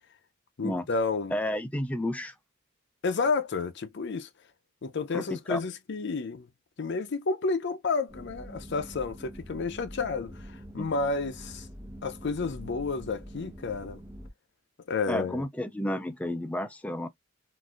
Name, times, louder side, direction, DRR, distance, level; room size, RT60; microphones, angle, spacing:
voice 1, 0.6-1.4 3.0-4.3 4.8-6.5 6.8-11.7 12.0-14.0 14.9-15.4, left 4 dB, 60° left, 0.5 m, -31 dB
voice 2, 1.3-2.3 5.1-5.6 10.8-10.9 15.1-17.1, left 1 dB, 5° left, 0.3 m, -31 dB
sound 1, 8.1-14.3, equal, 10° right, 0.9 m, -45 dB
3.9 x 2.5 x 2.4 m
head